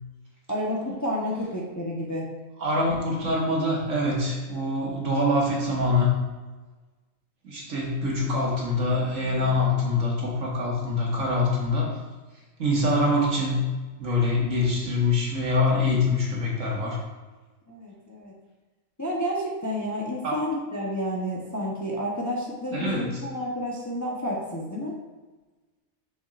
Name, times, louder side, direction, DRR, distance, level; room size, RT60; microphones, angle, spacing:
voice 1, 0.5-2.3 17.7-18.3 19.0-24.9, equal, 15° left, -4 dB, 0.8 m, -30 dB
voice 2, 2.6-6.1 7.4-12.0 12.6-13.7 14.0-17.0 20.2-20.4 22.7-23.2, left 2 dB, 65° right, -3 dB, 2.0 m, -24 dB
7.0 x 6.4 x 2.5 m, 1.2 s
omnidirectional pair, 1.4 m